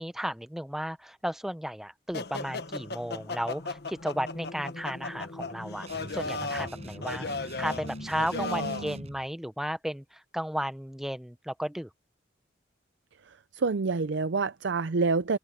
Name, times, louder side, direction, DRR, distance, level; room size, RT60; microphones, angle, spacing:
voice 1, 0.0-11.9, equal, ahead, 0.7 m, -34 dB
sound 1, 2.1-8.9, left 3 dB, 55° left, 1.3 m, -36 dB
sound 2, 5.9-9.3, right 1 dB, 35° right, 7.6 m, -44 dB
voice 2, 8.3-9.0 13.3-15.4, right 4 dB, 75° right, 0.5 m, -28 dB
head